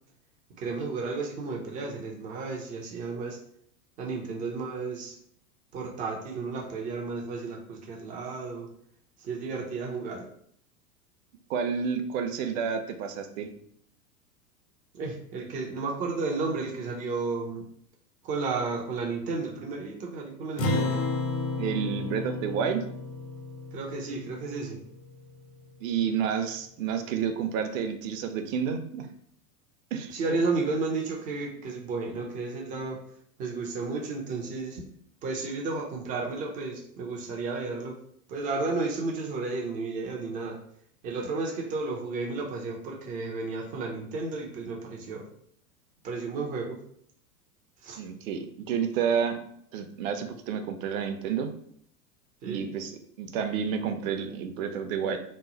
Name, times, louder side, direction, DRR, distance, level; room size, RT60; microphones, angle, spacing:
voice 1, 0.6-3.4 4.0-5.2 5.7-8.7 9.2-10.3 14.9-17.6 18.2-21.0 23.7-24.8 30.1-33.0 33.4-34.8 35.2-38.0 38.3-40.6 41.0-45.3 46.0-46.8 47.8-48.0 52.4-52.6, right 3 dB, 20° right, 1 dB, 0.3 m, -32 dB
voice 2, 11.5-13.5 21.6-22.8 25.8-29.1 29.9-30.4 48.0-49.4 49.7-51.5 52.4-52.9 53.2-55.2, right 7 dB, 55° right, 7 dB, 0.6 m, -30 dB
Acoustic guitar, 20.6-25.3, left 2 dB, 55° left, 0.8 m, -32 dB
3.0 x 2.0 x 3.8 m, 0.65 s
hypercardioid pair, 100°, 48 cm